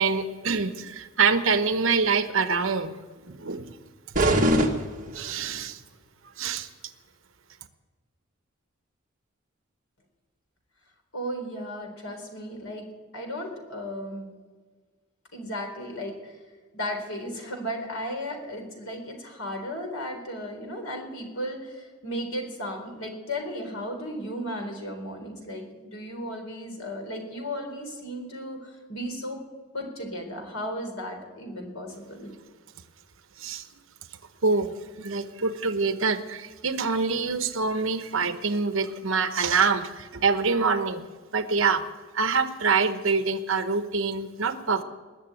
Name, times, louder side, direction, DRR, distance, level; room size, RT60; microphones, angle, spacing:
voice 1, 0.0-2.9 3.2-3.7 5.1-5.8 6.4-6.7 33.4-33.7 34.4-41.0 41.3-41.8 42.1-44.8, right 4 dB, 70° right, 9 dB, 1.0 m, -25 dB
sound 1, 4.1-5.6, right 1 dB, 40° right, 1.5 m, -23 dB
voice 2, 11.1-12.9 13.1-14.3 15.3-16.3 16.7-29.4 29.7-32.3, equal, 80° left, 3 dB, 4.0 m, -35 dB
21.0 x 7.1 x 9.0 m, 1.5 s
head